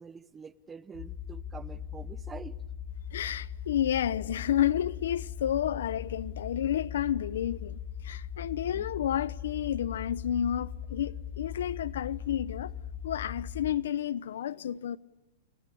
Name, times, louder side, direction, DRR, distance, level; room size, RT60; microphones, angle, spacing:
voice 1, 0.0-2.5 8.4-8.9, right 5 dB, 15° right, 0.9 m, -46 dB
sound 1, 0.9-13.7, left 8 dB, 45° left, 2.5 m, -40 dB
voice 2, 3.1-7.8 8.0-12.7 13.0-15.0, left 10 dB, 80° left, 0.9 m, -30 dB
29.5 x 27.5 x 7.2 m
hypercardioid pair, 135°, 0 cm